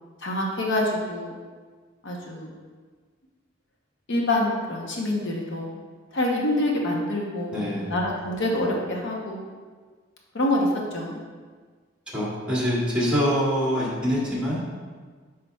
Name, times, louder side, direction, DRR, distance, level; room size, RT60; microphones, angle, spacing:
voice 1, 0.2-1.3 2.0-2.5 4.1-5.8 6.1-9.4 10.3-11.2, left 1 dB, 65° left, -1 dB, 0.9 m, -26 dB
voice 2, 7.5-7.9 12.1-14.6, equal, 5° right, -7 dB, 1.8 m, -24 dB
8.2 x 5.0 x 2.3 m, 1.5 s
head